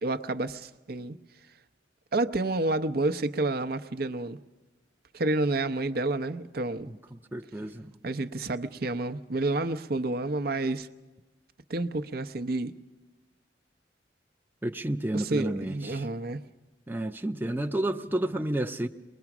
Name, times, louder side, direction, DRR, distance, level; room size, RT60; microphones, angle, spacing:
voice 1, 0.0-1.2 2.1-4.4 5.1-6.9 8.0-10.9 11.7-12.7 15.1-16.4, right 2 dB, 60° right, 11 dB, 0.7 m, -29 dB
voice 2, 7.3-7.8 14.6-16.0 16.9-18.9, right 1 dB, 10° right, 5 dB, 0.6 m, -30 dB
23.5 x 20.5 x 6.0 m, 1.2 s
head